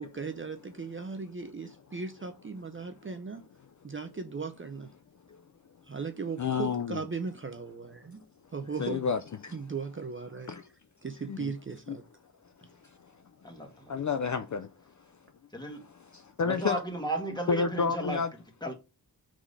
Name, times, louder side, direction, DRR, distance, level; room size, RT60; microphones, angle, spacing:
voice 1, 0.0-3.5 3.8-4.9 5.8-8.2 8.5-9.1 9.5-10.5 11.0-12.0, right 5 dB, 30° right, 0.6 m, -37 dB
voice 2, 6.4-7.0 8.8-9.6 10.5-10.6 11.3-11.5 11.9-12.0 13.9-14.7 16.4-16.8 17.5-18.3, left 5 dB, 45° left, 0.5 m, -29 dB
voice 3, 13.4-13.9 15.5-15.8 16.4-18.2 18.6-18.7, right 1 dB, 10° left, 1.8 m, -34 dB
5.0 x 3.7 x 5.4 m
wide cardioid pair, 95°, 40 cm